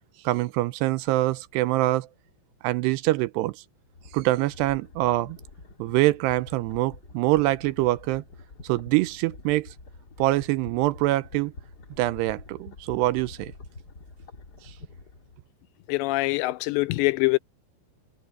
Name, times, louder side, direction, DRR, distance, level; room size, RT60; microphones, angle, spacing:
voice 1, 0.2-2.1 2.6-3.6 4.1-5.4 5.8-8.2 8.6-9.7 10.2-11.5 12.0-13.5, right 18 dB, 80° right, 2.7 m, -24 dB
sound 1, 3.8-15.4, left 3 dB, 30° left, 2.2 m, -46 dB
voice 2, 15.9-17.4, left 22 dB, 90° left, 2.9 m, -24 dB
omnidirectional pair, 5.0 m